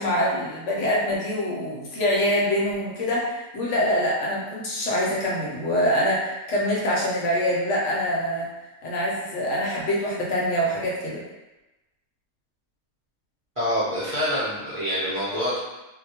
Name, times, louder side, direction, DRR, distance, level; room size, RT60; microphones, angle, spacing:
voice 1, 0.0-8.5 8.8-11.2, equal, 70° left, -4 dB, 0.8 m, -25 dB
voice 2, 13.6-15.6, equal, 30° right, -12 dB, 0.6 m, -26 dB
2.2 x 2.1 x 2.8 m, 1.0 s
omnidirectional pair, 1.4 m